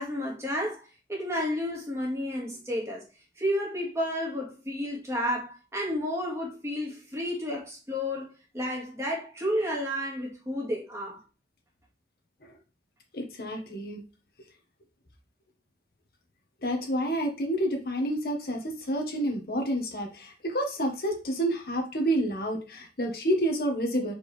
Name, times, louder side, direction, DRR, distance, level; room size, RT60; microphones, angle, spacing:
voice 1, 0.0-3.0 3.4-11.2, equal, 15° right, 1.9 m, -31 dB
voice 2, 13.1-14.0 16.6-24.1, right 1 dB, 55° left, 1.3 m, -29 dB
6.1 x 4.8 x 3.3 m
head